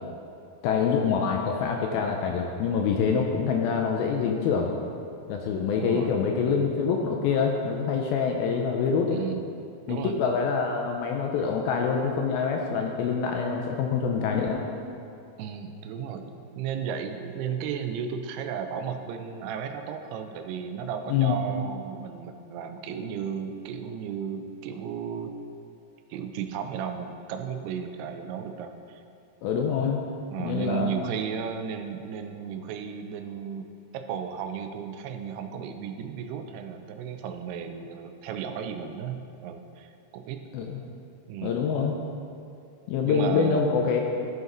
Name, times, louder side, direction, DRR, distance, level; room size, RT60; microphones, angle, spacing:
voice 1, 0.6-4.7 5.3-9.2 9.9-14.7 21.1-21.4 29.4-30.0 30.4-30.9 40.5-40.8 41.4-42.0 42.9-44.0, left 6 dB, 80° left, 2 dB, 2.2 m, -25 dB
voice 2, 5.7-6.2 9.1-9.4 9.9-10.1 15.4-25.4 26.1-29.0 30.3-33.6 33.9-40.4 41.3-41.6 43.0-43.6, right 7 dB, 85° right, 6 dB, 2.6 m, -34 dB
13.5 x 5.4 x 3.9 m, 2.5 s
omnidirectional pair, 4.7 m